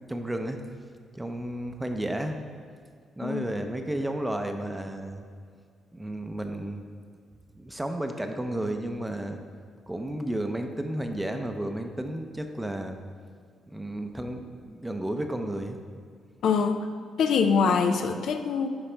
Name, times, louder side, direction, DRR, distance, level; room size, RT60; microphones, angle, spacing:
voice 1, 0.1-0.6 1.1-2.4 3.2-5.3 5.9-6.8 7.6-9.4 9.9-13.0 13.7-15.8, right 1 dB, 10° right, 5 dB, 0.6 m, -32 dB
voice 2, 16.4-16.9 17.2-18.7, left 5 dB, 70° left, 7 dB, 0.5 m, -24 dB
11.0 x 4.1 x 3.4 m, 2.1 s
cardioid pair, 90°, 0 cm